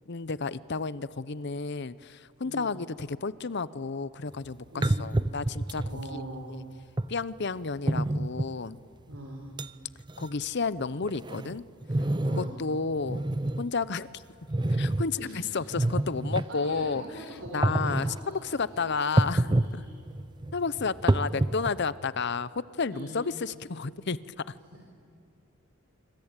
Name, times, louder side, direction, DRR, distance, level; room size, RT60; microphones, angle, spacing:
voice 1, 0.1-6.2 6.5-6.6 7.1-8.8 10.2-11.6 12.4-13.2 13.6-14.2 14.8-17.2 17.5-19.9 20.5-24.2 24.5-24.6, left 4 dB, 55° left, 17 dB, 0.7 m, -32 dB
sound 1, 4.3-4.4 4.8-6.0 7.0-7.1 7.9-8.5 9.1-9.2 9.6-9.7 10.0-10.3 10.8-12.6 13.0-13.7 14.5-15.1 15.6-16.4 17.5-18.2 19.2-19.7 20.1-21.9, right 1 dB, 20° right, 0.6 m, -27 dB
voice 2, 4.7-5.1 5.9-6.5 9.1-9.4 12.2-12.6 15.2-15.6 16.3-20.0 22.9-23.2 24.7-24.9, right 1 dB, 65° right, 0 dB, 4.3 m, -43 dB
25.0 x 24.5 x 9.0 m, 2.4 s
head